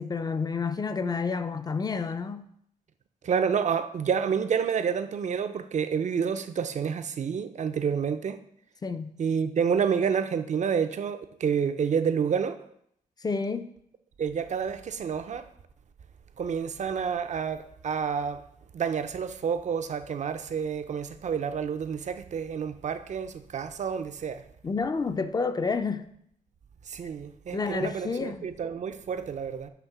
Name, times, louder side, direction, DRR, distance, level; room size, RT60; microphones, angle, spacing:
voice 1, 0.0-2.5 8.8-9.1 13.2-13.7 24.6-26.0 27.5-28.5, left 4 dB, 25° left, 0.5 m, -29 dB
voice 2, 3.2-8.4 9.2-12.6 14.2-15.4 16.4-18.4 18.7-24.4 26.9-29.7, right 7 dB, 55° right, 0.6 m, -29 dB
8.1 x 3.4 x 6.0 m
cardioid pair, 100°, 15 cm